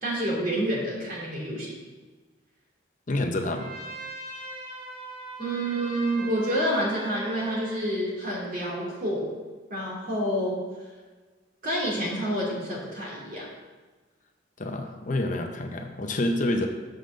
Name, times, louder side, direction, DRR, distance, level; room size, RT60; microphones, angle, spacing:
voice 1, 0.0-1.7 5.4-9.3 9.7-10.6 11.6-13.5, equal, 45° right, -4 dB, 2.6 m, -28 dB
voice 2, 3.1-3.7 14.6-16.7, left 1 dB, 40° left, 4 dB, 0.6 m, -28 dB
Trumpet, 3.5-7.8, right 2 dB, 30° right, 1.5 m, -40 dB
6.5 x 5.7 x 6.6 m, 1.3 s
head